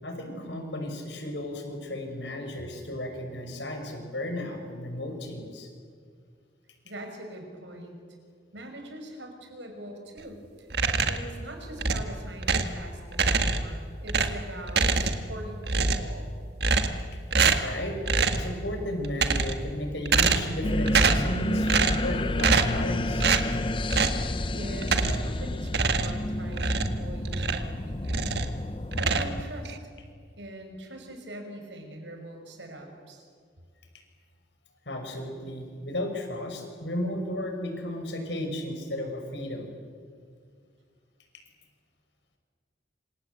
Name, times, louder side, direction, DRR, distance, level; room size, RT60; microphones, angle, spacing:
voice 1, 0.0-5.7 17.6-18.0 18.3-23.3 34.9-39.7, left 1 dB, 75° left, 5 dB, 5.6 m, -34 dB
voice 2, 6.8-8.0 8.5-10.7 11.0-16.3 24.5-28.3 28.6-29.8 30.4-33.2, right 1 dB, 75° right, 4 dB, 6.1 m, -42 dB
sound 1, 10.7-11.3 11.8-12.8 13.1-13.8 14.1-15.4 15.6-16.2 16.6-17.0 17.3-17.7 18.1-18.5 19.0-19.7 20.0-20.6 20.9-21.3 21.7-22.1 22.4-22.8 23.2-23.5 23.9-24.2 24.8-25.3 25.7-27.7 28.0-28.6 28.9-29.8, right 4 dB, 60° right, 1.7 m, -25 dB
sound 2, 20.6-29.4, left 1 dB, 30° left, 0.7 m, -30 dB
27.0 x 26.5 x 8.2 m, 2.1 s
head